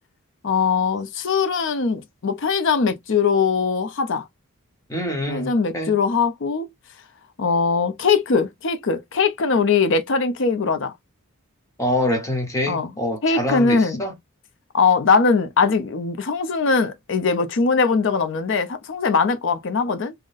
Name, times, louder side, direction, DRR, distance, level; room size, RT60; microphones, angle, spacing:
voice 1, 0.4-4.3 5.3-6.7 7.4-10.9 12.7-12.9 13.2-14.0 14.7-20.1, left 5 dB, 55° left, 0.5 m, -21 dB
voice 2, 4.9-5.9 11.8-14.1, left 1 dB, 15° left, 1.0 m, -25 dB
3.8 x 2.1 x 2.5 m
head